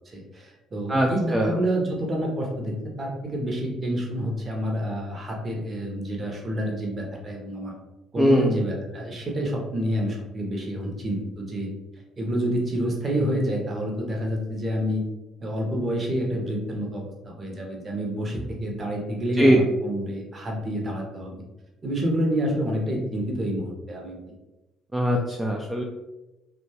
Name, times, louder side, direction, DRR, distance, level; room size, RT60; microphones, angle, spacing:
voice 1, 0.1-7.7 8.1-11.7 12.2-15.0 15.4-21.4 21.8-24.3, equal, 30° right, 0 dB, 0.7 m, -28 dB
voice 2, 0.9-1.6 8.2-8.6 19.4-19.6 24.9-25.8, equal, 10° right, 0 dB, 0.3 m, -21 dB
2.9 x 2.2 x 2.7 m, 1.0 s
figure-of-eight pair, 50°, 0 cm